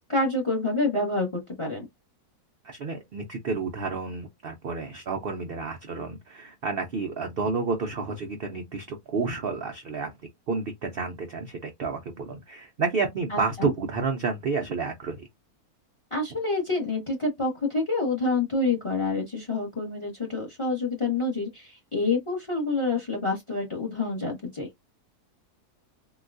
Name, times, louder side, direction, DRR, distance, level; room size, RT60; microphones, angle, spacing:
voice 1, 0.0-1.9 13.3-13.7 16.1-24.7, left 3 dB, 25° left, 0.8 m, -27 dB
voice 2, 2.6-10.1 10.5-15.2, right 4 dB, 85° right, 0.5 m, -30 dB
3.9 x 2.2 x 2.5 m
omnidirectional pair, 1.7 m